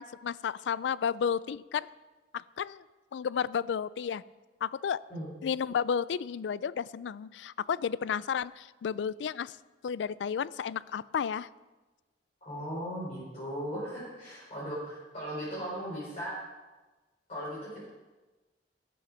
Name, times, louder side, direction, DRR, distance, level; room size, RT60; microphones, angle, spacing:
voice 1, 0.0-1.9 2.3-2.8 3.1-4.2 4.6-5.0 5.4-9.6 9.8-11.5, left 7 dB, 85° left, 19 dB, 0.3 m, -32 dB
voice 2, 12.4-16.4 17.3-17.8, equal, 40° left, -9 dB, 4.2 m, -37 dB
13.5 x 7.0 x 6.0 m, 1.2 s
head